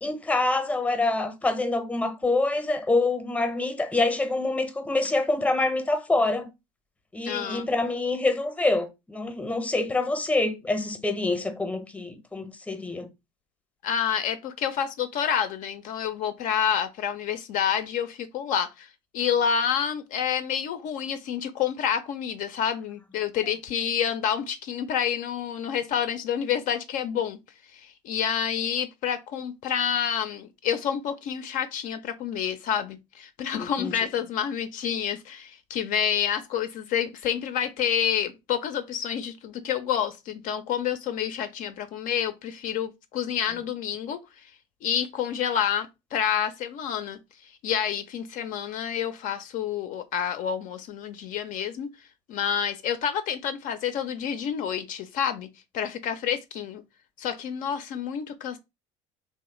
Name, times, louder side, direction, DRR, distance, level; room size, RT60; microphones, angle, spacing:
voice 1, 0.0-6.5 7.1-13.1 33.6-33.9, left 2 dB, 10° left, 0.6 m, -26 dB
voice 2, 7.2-7.6 13.8-18.9 19.1-27.4 27.7-44.2 44.8-51.9 52.3-55.5 55.7-56.8 57.2-58.6, left 8 dB, 50° left, 0.4 m, -28 dB
3.0 x 2.0 x 3.0 m
hypercardioid pair, 70°, 17 cm